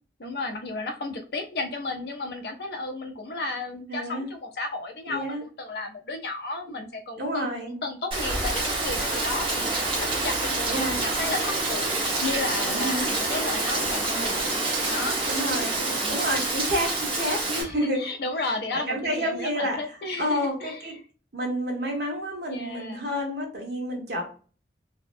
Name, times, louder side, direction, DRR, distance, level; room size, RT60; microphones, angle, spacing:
voice 1, 0.2-14.6 14.9-15.2 15.8-16.4 17.5-20.8 22.5-23.1, left 2 dB, 65° left, 4 dB, 0.5 m, -33 dB
voice 2, 3.9-4.3 5.1-5.4 7.2-7.8 10.7-11.0 12.6-13.0 15.2-15.8 16.1-18.0 18.9-20.9 21.3-24.3, equal, 65° right, 0 dB, 1.0 m, -29 dB
Rain, 8.1-17.6, right 2 dB, 30° right, 0.8 m, -27 dB
2.7 x 2.1 x 2.5 m, 0.38 s
head